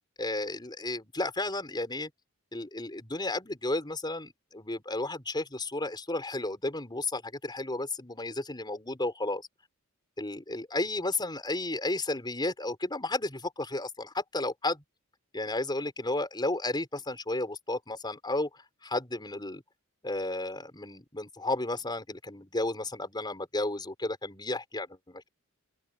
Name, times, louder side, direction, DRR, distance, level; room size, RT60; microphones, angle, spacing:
voice 1, 0.2-2.1 2.5-9.4 10.2-14.8 15.3-18.5 18.8-19.6 20.0-25.3, left 2 dB, 20° left, 4.8 m, -33 dB
open air
head